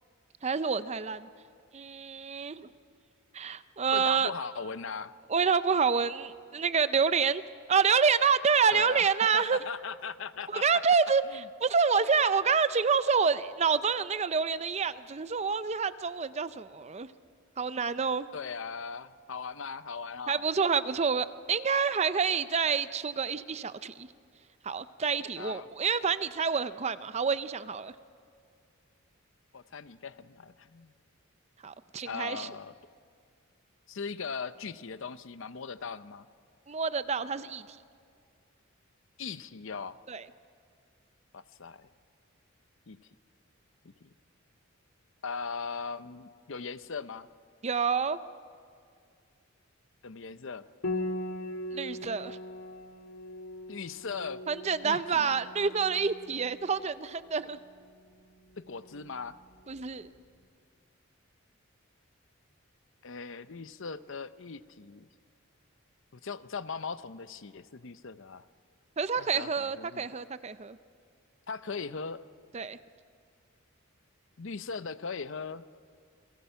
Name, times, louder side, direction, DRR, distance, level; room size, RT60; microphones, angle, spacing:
voice 1, 0.4-1.3 1.7-2.7 3.3-4.3 5.3-7.4 7.7-9.6 10.5-17.1 17.6-18.3 20.3-24.1 24.6-27.9 31.6-32.5 36.7-37.6 40.1-40.2 47.6-48.2 51.7-52.4 54.5-57.6 59.7-60.1 69.0-70.8 72.5-72.8, right 5 dB, 30° right, 13 dB, 0.5 m, -28 dB
voice 2, 3.9-5.1 8.7-10.6 11.3-11.5 18.3-20.4 25.4-25.7 29.5-30.9 32.0-32.7 33.9-36.3 39.2-40.0 41.3-41.9 42.9-43.1 43.8-44.1 45.2-47.3 50.0-50.7 53.7-54.4 54.8-55.4 58.6-59.4 63.0-65.1 66.1-68.5 69.2-70.1 71.5-72.2 74.4-75.6, left 5 dB, 60° left, 14 dB, 0.7 m, -39 dB
Piano, 50.8-60.2, left 1 dB, 90° left, 1.8 m, -41 dB
29.0 x 21.5 x 5.8 m, 2.2 s
head